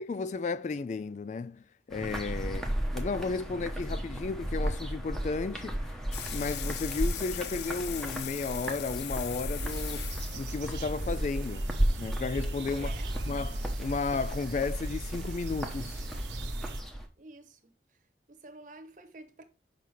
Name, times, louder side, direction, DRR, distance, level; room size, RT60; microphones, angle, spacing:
voice 1, 0.0-1.6 1.9-2.6 2.9-5.8 6.3-11.7 12.0-12.9 13.3-16.0, left 4 dB, 40° left, 0.3 m, -33 dB
sound 1, 1.9-17.0, right 1 dB, ahead, 0.9 m, -35 dB
sound 2, 6.1-11.5, left 9 dB, 70° left, 0.7 m, -41 dB
sound 3, 9.6-16.8, right 1 dB, 90° right, 1.3 m, -37 dB
voice 2, 12.7-13.1 17.2-17.6 18.3-19.4, right 2 dB, 45° right, 1.0 m, -49 dB
5.9 x 5.5 x 4.8 m
head